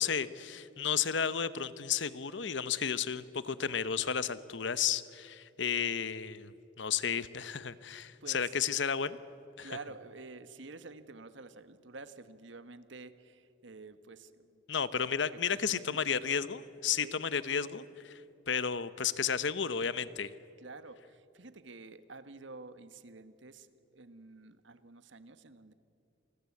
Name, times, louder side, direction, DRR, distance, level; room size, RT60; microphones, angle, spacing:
voice 1, 0.0-9.2 9.6-9.7 14.7-20.3, left 7 dB, 70° left, 15 dB, 0.9 m, -33 dB
voice 2, 8.2-8.5 9.6-14.6 15.0-16.0 17.0-17.2 20.6-25.7, right 3 dB, 75° right, 12 dB, 1.2 m, -49 dB
28.5 x 20.5 x 8.5 m, 2.8 s
head